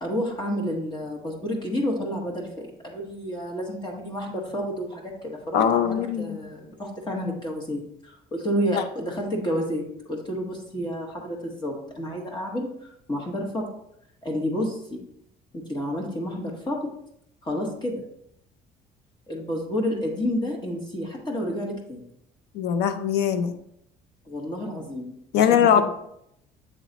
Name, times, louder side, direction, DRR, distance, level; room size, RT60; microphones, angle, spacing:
voice 1, 0.0-12.7 13.1-13.7 14.2-15.0 15.5-16.9 17.4-18.0 19.3-22.0 24.2-25.8, equal, 25° left, -1 dB, 1.3 m, -30 dB
voice 2, 5.5-6.4 22.5-23.6 25.3-25.8, left 8 dB, 85° left, 10 dB, 0.6 m, -21 dB
7.7 x 3.1 x 4.0 m, 0.75 s
cardioid pair, 110°, 17 cm